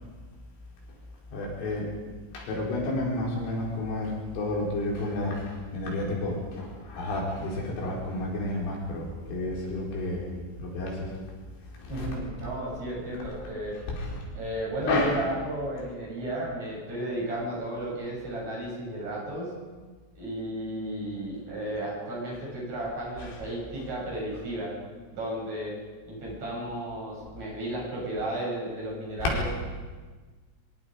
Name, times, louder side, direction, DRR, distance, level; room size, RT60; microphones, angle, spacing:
voice 1, 1.3-2.0 2.3-10.3 10.6-11.2 11.7-12.2 13.2-13.5 13.9-14.2 14.8-15.3 23.2-23.5 23.8-23.9 24.3-24.4 29.2-29.4, left 2 dB, 85° left, -2 dB, 7.4 m, -31 dB
voice 2, 11.9-13.8 14.3-19.5 20.2-24.7 25.1-25.7 26.1-29.5, right 1 dB, 35° right, -4 dB, 9.1 m, -33 dB
25.0 x 23.5 x 5.2 m, 1.4 s
omnidirectional pair, 5.6 m